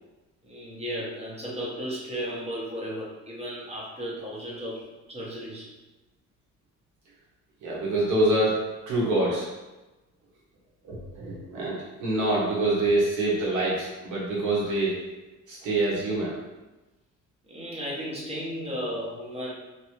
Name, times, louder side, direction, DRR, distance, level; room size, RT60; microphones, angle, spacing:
voice 1, 0.4-5.7 17.5-19.5, equal, 20° right, -4 dB, 1.1 m, -34 dB
voice 2, 7.6-8.6 8.9-9.5 10.8-15.0 15.5-16.4, right 2 dB, 85° right, -6 dB, 1.3 m, -25 dB
3.0 x 2.6 x 3.0 m, 1.1 s
cardioid pair, 90°, 30 cm